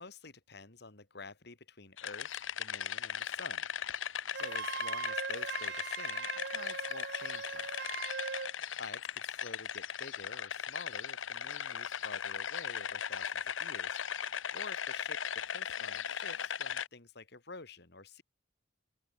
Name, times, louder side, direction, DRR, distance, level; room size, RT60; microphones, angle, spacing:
voice 1, 0.0-3.7 4.3-7.9 8.7-14.0 14.5-18.2, left 3 dB, 55° left, 2.5 m, -49 dB
sound 1, 2.0-16.9, left 8 dB, 85° left, 0.9 m, -38 dB
Wind instrument woodwind instrument, 4.3-8.5, right 6 dB, 60° right, 0.8 m, -40 dB
open air
head